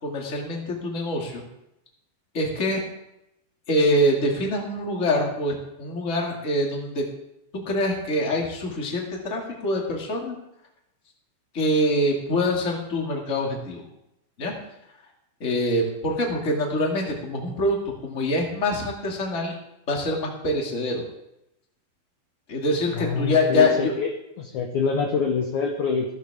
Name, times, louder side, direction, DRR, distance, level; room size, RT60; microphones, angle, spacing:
voice 1, 0.0-1.4 2.3-2.8 3.7-7.0 7.6-10.3 11.5-13.8 14.4-14.5 15.4-17.8 18.0-19.5 19.9-21.0 22.5-23.9, left 1 dB, 25° left, -1 dB, 2.0 m, -24 dB
voice 2, 22.9-24.1 24.4-26.1, left 5 dB, 65° left, 2 dB, 2.0 m, -25 dB
15.0 x 14.5 x 3.6 m, 0.85 s
omnidirectional pair, 4.5 m